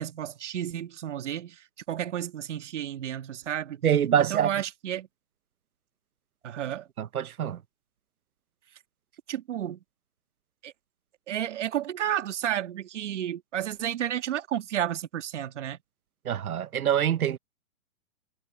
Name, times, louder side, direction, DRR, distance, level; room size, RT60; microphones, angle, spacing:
voice 1, 0.0-3.8 4.2-5.1 6.4-6.9 9.3-9.8 10.6-10.7 11.3-15.8, right 10 dB, 55° right, 1.8 m, -32 dB
voice 2, 3.8-4.5 7.0-7.6 16.2-17.4, right 9 dB, 90° right, 1.2 m, -25 dB
hypercardioid pair, 165°, 42 cm